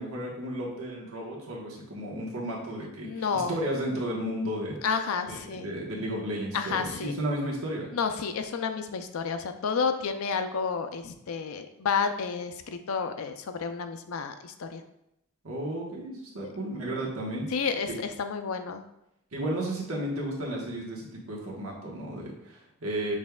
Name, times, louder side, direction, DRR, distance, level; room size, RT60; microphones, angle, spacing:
voice 1, 0.0-4.8 5.3-7.9 15.4-17.5 17.9-18.0 19.3-23.1, right 1 dB, 80° right, -3 dB, 1.2 m, -33 dB
voice 2, 3.0-3.6 4.8-5.7 6.5-7.1 7.9-14.8 17.5-18.8, left 5 dB, 85° left, 8 dB, 0.4 m, -30 dB
6.3 x 3.4 x 2.3 m, 0.83 s
head